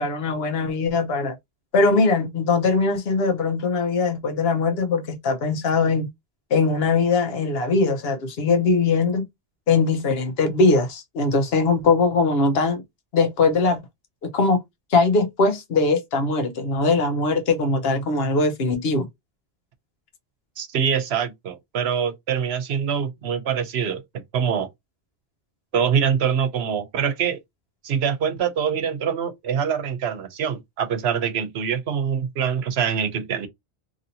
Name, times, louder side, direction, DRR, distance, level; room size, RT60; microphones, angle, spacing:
voice 1, 0.0-1.4 1.7-6.1 6.5-9.3 9.7-12.8 13.1-13.8 14.2-14.6 14.9-19.1, left 3 dB, 70° left, 0.9 m, -21 dB
voice 2, 20.6-24.0 24.3-24.7 25.7-27.4 27.8-33.5, right 7 dB, 75° right, 0.9 m, -24 dB
2.8 x 2.7 x 2.7 m
omnidirectional pair, 1.1 m